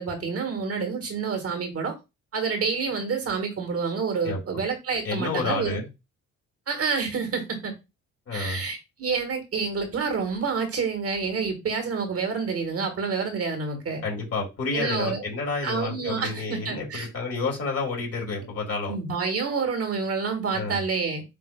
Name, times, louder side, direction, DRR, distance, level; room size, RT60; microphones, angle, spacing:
voice 1, 0.0-1.9 2.3-5.8 6.7-7.7 8.3-14.0 14.7-15.2 15.6-17.1 18.9-21.2, right 5 dB, 50° right, 1.4 m, -28 dB
voice 2, 5.0-5.9 8.3-8.6 14.0-18.9 20.5-20.8, left 4 dB, 50° left, 2.4 m, -30 dB
7.9 x 2.7 x 2.2 m
cardioid pair, 90°, 30 cm